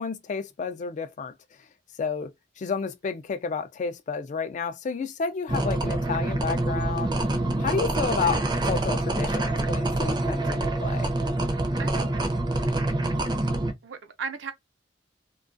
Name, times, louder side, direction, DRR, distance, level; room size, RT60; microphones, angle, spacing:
voice 1, 0.0-1.3 2.0-7.1 7.6-11.1, left 5 dB, 40° left, 0.3 m, -31 dB
sound 1, 5.5-13.7, right 2 dB, 25° right, 0.5 m, -26 dB
voice 2, 7.2-7.6 11.8-12.3 13.8-14.5, right 5 dB, 80° right, 0.6 m, -37 dB
2.3 x 2.2 x 2.5 m
head